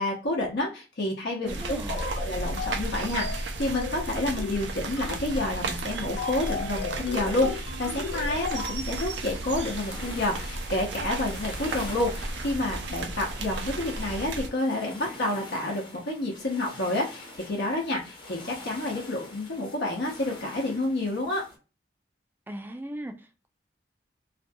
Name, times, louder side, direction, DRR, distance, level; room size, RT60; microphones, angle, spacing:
voice 1, 0.0-21.4, left 2 dB, 70° left, -2 dB, 0.7 m, -29 dB
voice 2, 1.4-2.0 22.5-23.5, right 1 dB, 10° right, 6 dB, 0.4 m, -38 dB
sound 1, 1.5-14.5, right 2 dB, 80° right, 0.5 m, -34 dB
sound 2, 2.0-2.2 2.6-2.8 3.2-3.5 3.8-4.0 4.4-4.6 5.0-5.2 5.6-5.8 6.2-8.8, left 5 dB, 90° left, 0.4 m, -36 dB
sound 3, 8.8-21.6, left 2 dB, 30° left, 0.8 m, -45 dB
2.6 x 2.3 x 2.5 m, 0.31 s
head